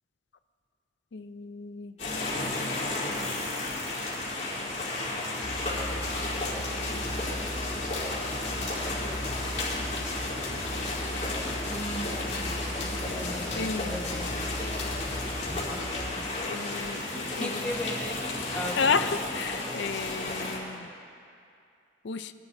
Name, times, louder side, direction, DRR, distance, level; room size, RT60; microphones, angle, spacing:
voice 1, 1.1-1.9 13.6-14.0 16.4-17.7 18.8-20.9 22.0-22.3, left 5 dB, 75° left, 10 dB, 0.5 m, -32 dB
sound 1, 2.0-20.6, left 2 dB, 40° left, 3.7 m, -33 dB
sound 2, 5.4-16.1, equal, 15° right, 1.0 m, -39 dB
voice 2, 11.7-14.3 15.5-16.3 17.1-18.9, equal, 5° left, -2 dB, 1.3 m, -38 dB
24.0 x 11.5 x 2.7 m, 2.4 s
head